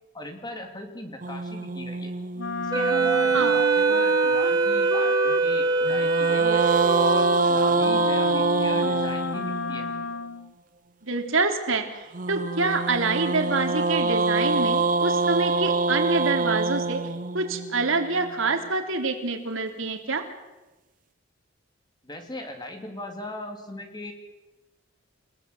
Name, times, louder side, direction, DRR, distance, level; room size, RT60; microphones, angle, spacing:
voice 1, 0.1-2.1 2.6-6.6 6.9-9.9 22.0-24.1, left 1 dB, 20° left, 5 dB, 2.9 m, -38 dB
sound 1, 1.2-3.6 5.8-10.0 12.1-18.3, right 3 dB, 40° right, 0.8 m, -25 dB
Wind instrument woodwind instrument, 2.4-10.5, left 4 dB, 60° left, 0.8 m, -31 dB
Wind instrument woodwind instrument 2, 2.7-7.3, right 5 dB, 20° right, 1.6 m, -23 dB
voice 2, 11.0-11.8 12.3-17.0 17.3-20.2, right 3 dB, 75° right, 4 dB, 3.3 m, -26 dB
29.5 x 16.5 x 8.0 m, 1.1 s
head